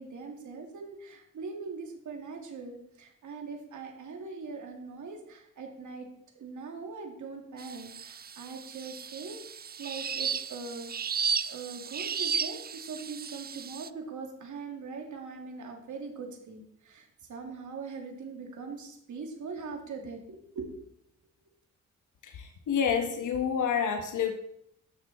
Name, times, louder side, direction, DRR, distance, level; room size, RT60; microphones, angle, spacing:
voice 1, 0.0-6.1 6.3-10.9 11.4-20.7, right 4 dB, 75° right, 2 dB, 2.6 m, -41 dB
sound 1, 7.6-13.9, right 6 dB, 30° right, 0.5 m, -34 dB
voice 2, 22.2-24.3, left 7 dB, 80° left, 5 dB, 1.1 m, -28 dB
15.5 x 6.5 x 4.2 m, 0.74 s
cardioid pair, 75°, 30 cm